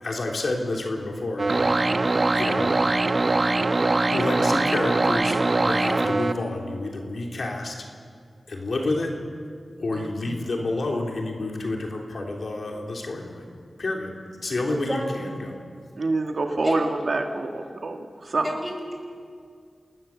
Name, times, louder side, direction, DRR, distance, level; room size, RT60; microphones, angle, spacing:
voice 1, 0.0-1.5 2.3-2.7 4.1-7.7 8.5-9.1 9.8-13.4 13.8-14.2 14.4-15.6, left 2 dB, 65° left, 1 dB, 3.2 m, -29 dB
sound 1, 1.4-6.3, right 2 dB, 45° right, 1.1 m, -22 dB
voice 2, 9.9-10.4 16.0-18.5, right 3 dB, 60° right, 4 dB, 1.8 m, -27 dB
voice 3, 14.7-15.1 16.6-16.8 18.4-18.9, left 1 dB, 15° left, 1 dB, 6.2 m, -30 dB
29.0 x 19.0 x 7.3 m, 2.2 s
wide cardioid pair, 80°, 0 cm